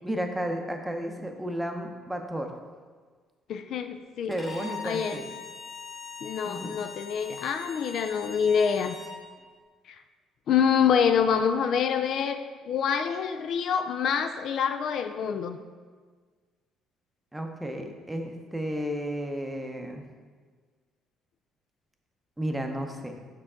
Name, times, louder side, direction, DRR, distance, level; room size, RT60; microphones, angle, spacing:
voice 1, 0.0-2.5 4.3-5.3 6.4-6.8 17.3-20.0 22.4-23.2, equal, 10° right, 4 dB, 0.6 m, -33 dB
voice 2, 3.5-4.3 4.8-5.2 6.2-9.0 9.9-10.0 10.5-12.4 12.7-15.6, left 7 dB, 60° left, 8 dB, 0.3 m, -26 dB
Bowed string instrument, 4.3-9.2, left 5 dB, 30° left, 1.1 m, -41 dB
5.8 x 4.6 x 3.7 m, 1.5 s
cardioid pair, 100°, 0 cm